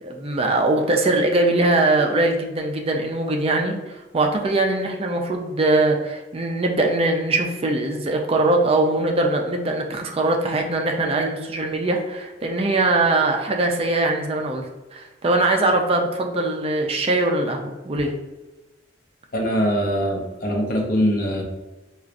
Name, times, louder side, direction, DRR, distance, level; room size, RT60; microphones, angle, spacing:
voice 1, 0.0-14.7 14.9-18.2, right 2 dB, 35° right, 2 dB, 0.4 m, -21 dB
voice 2, 19.3-21.4, equal, 50° left, 0 dB, 0.7 m, -22 dB
4.5 x 2.4 x 2.5 m, 1.1 s
head